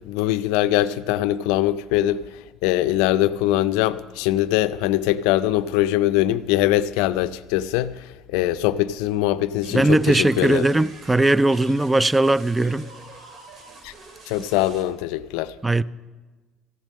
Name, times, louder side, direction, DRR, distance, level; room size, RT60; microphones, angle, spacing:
voice 1, 0.1-2.2 2.6-8.1 8.3-10.7 13.8-13.9 14.3-15.5, left 14 dB, 80° left, 0.4 m, -22 dB
sound 1, 9.6-14.8, right 3 dB, 55° right, 2.3 m, -45 dB
voice 2, 9.7-12.9 15.6-15.8, right 2 dB, 15° right, 0.4 m, -19 dB
14.5 x 7.4 x 7.4 m
supercardioid pair, 80°, 0 cm